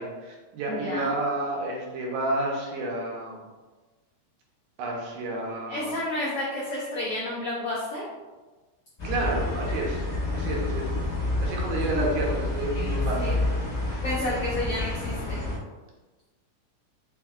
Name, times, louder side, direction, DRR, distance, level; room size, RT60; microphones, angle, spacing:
voice 1, 0.0-3.4 4.8-5.9 9.0-10.0 10.3-10.9 11.4-13.4 13.8-14.0, right 2 dB, 80° right, -1 dB, 2.2 m, -30 dB
voice 2, 0.7-1.1 5.7-8.0 11.9-12.1 13.2-13.4 14.0-15.4, left 1 dB, 80° left, -6 dB, 1.3 m, -31 dB
sound 1, 9.0-15.6, left 2 dB, 45° left, 0.9 m, -29 dB
5.1 x 3.6 x 2.2 m, 1.3 s
omnidirectional pair, 3.5 m